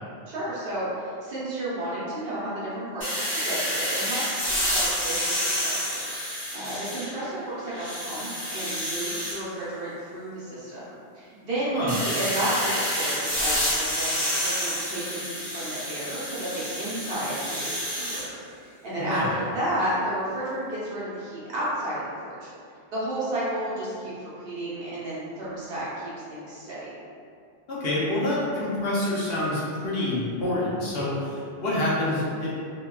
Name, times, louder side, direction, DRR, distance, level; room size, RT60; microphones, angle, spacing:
voice 1, 0.3-4.2 4.5-5.1 5.4-6.1 6.5-10.8 11.1-17.7 18.0-18.4 18.6-22.5 22.9-24.1 24.4-26.9, right 1 dB, 60° right, -9 dB, 1.0 m, -32 dB
sound 1, 3.0-7.3 7.7-9.4 11.9-18.2, equal, 15° left, 0.5 m, -29 dB
voice 2, 19.0-19.3 27.7-32.5, left 1 dB, 65° left, -7 dB, 0.9 m, -27 dB
2.8 x 2.2 x 2.2 m, 2.3 s
omnidirectional pair, 1.1 m